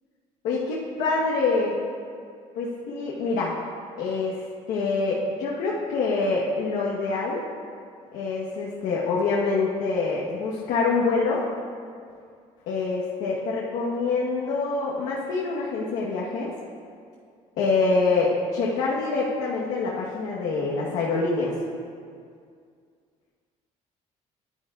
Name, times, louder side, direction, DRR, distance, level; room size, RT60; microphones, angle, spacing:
voice 1, 0.4-1.7 2.5-3.6 4.0-4.4 4.7-7.4 8.1-11.4 12.7-16.5 17.6-21.5, left 3 dB, 85° left, -5 dB, 1.1 m, -25 dB
10.5 x 9.9 x 2.4 m, 2.2 s
cardioid pair, 115°, 13 cm